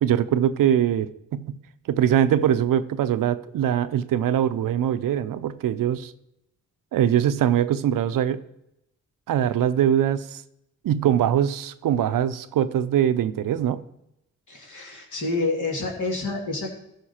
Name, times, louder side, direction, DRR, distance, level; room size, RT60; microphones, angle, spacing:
voice 1, 0.0-1.6 1.9-6.1 6.9-8.4 9.3-10.4 10.8-13.8, right 10 dB, 85° right, 14 dB, 0.6 m, -22 dB
voice 2, 14.5-16.7, left 3 dB, 65° left, 0 dB, 2.6 m, -28 dB
14.0 x 5.2 x 4.3 m, 0.83 s
supercardioid pair, 45°, 32 cm